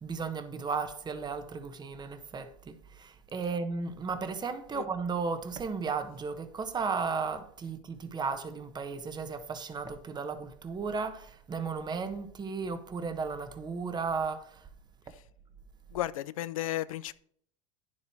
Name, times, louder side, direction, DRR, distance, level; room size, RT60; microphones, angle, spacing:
voice 1, 0.0-14.7, right 5 dB, 25° right, 1.2 m, -35 dB
voice 2, 15.9-17.1, left 13 dB, 85° left, 0.5 m, -34 dB
9.8 x 7.5 x 4.6 m
hypercardioid pair, 95°, 17 cm